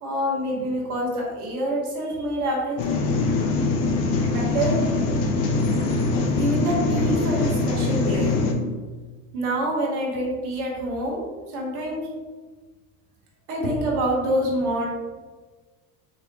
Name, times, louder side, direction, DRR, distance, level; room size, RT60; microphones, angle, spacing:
voice 1, 0.0-3.1 4.2-4.7 5.1-5.2 6.3-8.4 9.3-12.0 13.5-14.9, right 1 dB, 80° right, -3 dB, 1.3 m, -26 dB
sound 1, 2.8-8.5, left 3 dB, 50° left, 0.8 m, -23 dB
4.3 x 3.2 x 2.7 m, 1.4 s
hypercardioid pair, 85°, 44 cm